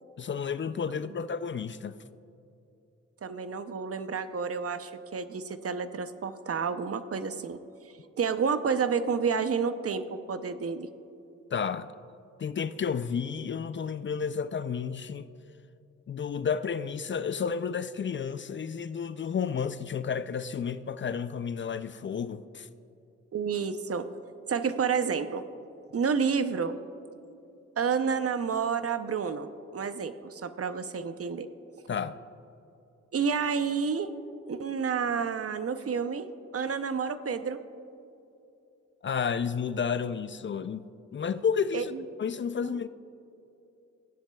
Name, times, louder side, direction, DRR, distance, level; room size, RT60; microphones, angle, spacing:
voice 1, 0.2-2.0 11.5-11.9 12.4-15.3 16.1-22.7 31.9-32.2 39.0-40.9 41.1-41.9 42.2-42.9, left 6 dB, 40° left, 0.4 m, -31 dB
voice 2, 3.2-7.6 8.2-10.9 23.3-24.1 24.5-25.4 25.9-26.8 27.8-31.5 33.1-34.1 34.5-37.6 41.7-41.8 42.6-42.7, right 6 dB, 50° right, 0.6 m, -30 dB
15.5 x 10.5 x 2.3 m
cardioid pair, 55°, 30 cm